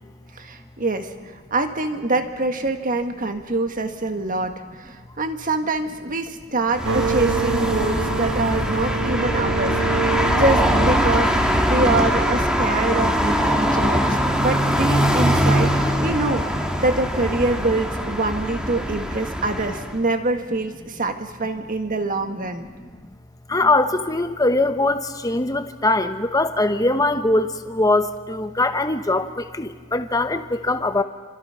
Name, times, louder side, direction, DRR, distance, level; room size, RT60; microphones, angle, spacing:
voice 1, 0.3-1.1 1.5-14.1 14.4-22.7, right 2 dB, 35° right, 7 dB, 1.7 m, -25 dB
sound 1, 6.7-20.0, equal, 5° right, 1.8 m, -22 dB
sound 2, 6.8-12.3, right 4 dB, 55° right, 1.3 m, -26 dB
voice 2, 23.5-31.0, left 2 dB, 15° left, 8 dB, 1.1 m, -21 dB
29.0 x 26.0 x 5.8 m, 1.5 s
head